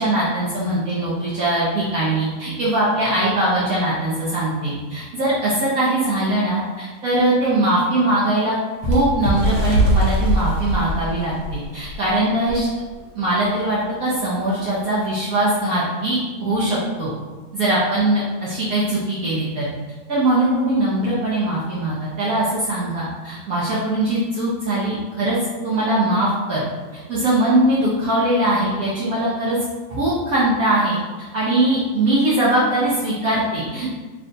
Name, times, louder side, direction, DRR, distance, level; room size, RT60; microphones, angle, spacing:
voice 1, 0.0-8.6 8.8-12.7 13.2-17.1 17.5-19.7 20.1-25.4 25.6-26.7 27.1-29.6 29.9-34.0, right 1 dB, 65° right, -8 dB, 1.1 m, -21 dB
Bird, 8.8-12.0 12.5-12.6 12.9-13.2 14.0-14.1, equal, 85° right, 1.5 m, -21 dB
3.3 x 2.5 x 3.8 m, 1.3 s
omnidirectional pair, 1.8 m